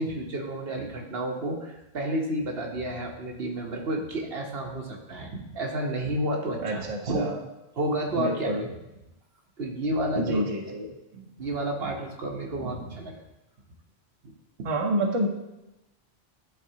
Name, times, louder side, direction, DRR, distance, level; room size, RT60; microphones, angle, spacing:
voice 1, 0.0-7.4 7.8-8.8 9.6-10.7 11.1-13.2 14.6-14.7, right 1 dB, 70° right, 1 dB, 1.1 m, -31 dB
voice 2, 6.6-7.4 8.1-8.6 10.2-10.9 14.6-15.3, right 1 dB, 35° right, 1 dB, 0.8 m, -28 dB
11.5 x 4.1 x 2.7 m, 0.95 s
omnidirectional pair, 1.1 m